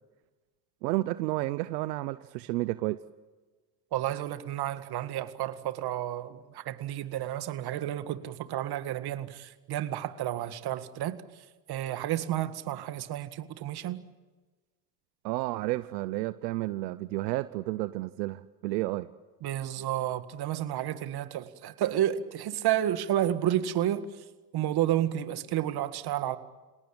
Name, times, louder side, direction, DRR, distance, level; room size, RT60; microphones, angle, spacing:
voice 1, 0.8-3.0 15.2-19.1, right 18 dB, 80° right, 0.9 m, -31 dB
voice 2, 3.9-11.2 11.7-14.0 19.4-24.1 24.5-26.4, right 12 dB, 50° right, 1.9 m, -31 dB
27.5 x 18.5 x 8.8 m
supercardioid pair, 95°, 49 cm